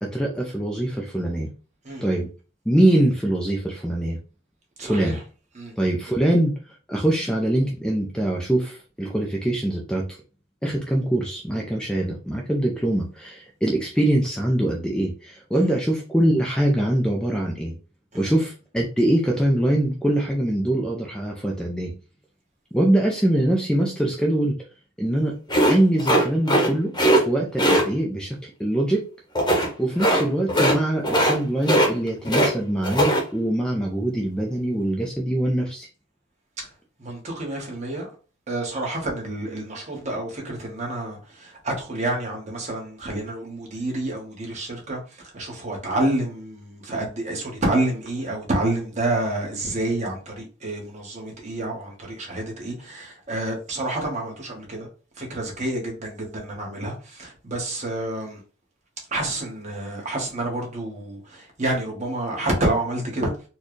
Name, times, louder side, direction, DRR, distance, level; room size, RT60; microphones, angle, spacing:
voice 1, 0.0-1.5 2.0-2.3 2.7-4.2 4.8-5.2 5.8-6.5 6.9-10.2 10.6-17.7 18.1-21.9 22.7-24.6 25.0-25.4 25.7-26.9 27.2-29.0 29.4-35.9, right 1 dB, 5° left, 0.4 m, -23 dB
voice 2, 4.8-5.2 5.5-5.7 18.2-18.3 37.0-38.1 38.5-54.9 55.2-58.4 59.1-63.3, right 1 dB, 35° right, 1.2 m, -28 dB
sound 1, 25.5-26.7 26.9-27.2 27.6-27.8 29.3-29.7 30.0-30.2 30.5-30.8 31.0-31.4 31.6-32.5 32.8-33.2, right 1 dB, 20° left, 0.9 m, -19 dB
4.3 x 2.3 x 3.1 m
head